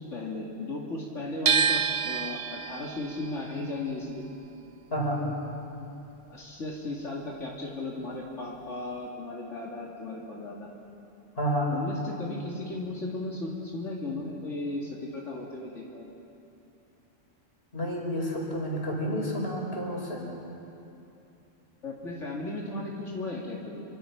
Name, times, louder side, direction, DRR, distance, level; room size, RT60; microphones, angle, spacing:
voice 1, 0.1-4.2 6.3-10.7 11.7-16.1 21.8-23.8, left 2 dB, 75° left, -3 dB, 2.8 m, -36 dB
sound 1, 1.5-7.5 7.8-9.1, right 7 dB, 80° right, 1.2 m, -31 dB
voice 2, 4.9-5.2 11.4-11.7 17.7-20.2, equal, 55° left, -2 dB, 5.5 m, -30 dB
28.5 x 24.5 x 5.9 m, 2.8 s
omnidirectional pair, 1.2 m